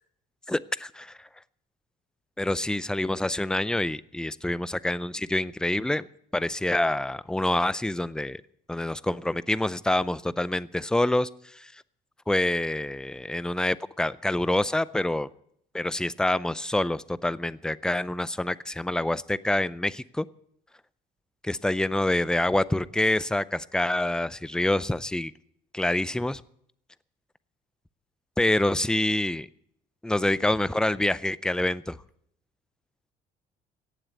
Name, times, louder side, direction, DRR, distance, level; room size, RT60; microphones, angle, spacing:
voice 1, 0.5-1.2 2.4-6.1 6.3-8.4 8.7-11.7 12.3-15.3 15.7-20.3 21.4-25.3 25.7-26.4 28.4-29.4 30.0-32.0, left 1 dB, 5° left, 0.5 m, -26 dB
17.5 x 7.5 x 8.3 m
cardioid pair, 110°, 17 cm